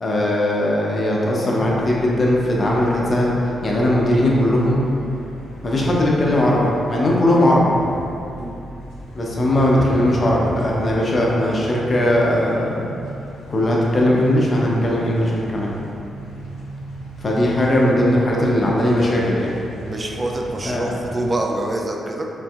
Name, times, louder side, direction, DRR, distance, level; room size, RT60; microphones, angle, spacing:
voice 1, 0.0-3.3 3.6-4.8 5.6-7.7 9.1-12.9 13.5-15.7 17.2-19.6 20.6-21.0, left 1 dB, 40° left, -3 dB, 0.7 m, -19 dB
sound 1, 1.6-21.4, equal, 85° left, 0.5 m, -38 dB
sound 2, 9.7-12.9, right 1 dB, 15° right, 1.3 m, -34 dB
voice 2, 19.8-22.3, right 1 dB, 30° right, 1 dB, 0.4 m, -25 dB
3.8 x 2.6 x 2.4 m, 2.7 s
supercardioid pair, 60°, 0 cm